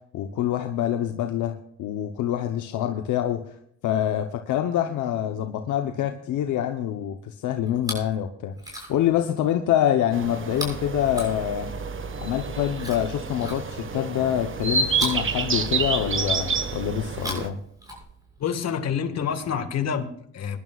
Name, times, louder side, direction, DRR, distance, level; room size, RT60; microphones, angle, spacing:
voice 1, 0.1-3.6 3.8-11.7 12.2-17.6, left 11 dB, 80° left, 5 dB, 0.9 m, -26 dB
Chewing mastication, 7.7-8.2 8.5-9.2 10.5-11.9 12.8-14.0 14.9-16.2 17.0-18.4 19.4-19.5, equal, 10° right, 6.3 m, -38 dB
sound 1, 10.1-17.5, right 5 dB, 40° right, 1.4 m, -29 dB
voice 2, 18.4-20.6, left 7 dB, 60° left, 7 dB, 1.8 m, -27 dB
22.5 x 11.0 x 2.4 m, 0.70 s
cardioid pair, 90°, 30 cm